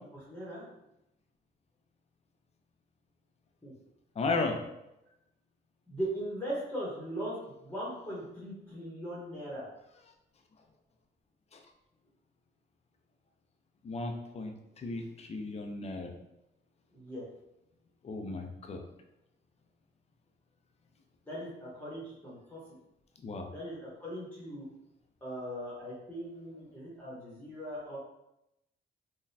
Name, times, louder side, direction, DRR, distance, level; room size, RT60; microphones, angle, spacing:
voice 1, 0.1-0.6 3.6-3.7 5.9-7.4 7.6-9.7 16.9-17.2 21.3-22.6 23.5-24.6 25.2-28.0, equal, 10° left, -8 dB, 1.1 m, -39 dB
voice 2, 4.2-4.6 11.5-11.6 13.8-16.1 18.0-18.8 23.2-23.5, left 3 dB, 30° left, 4 dB, 0.5 m, -35 dB
3.9 x 2.3 x 2.7 m, 0.88 s
cardioid pair, 90°, 20 cm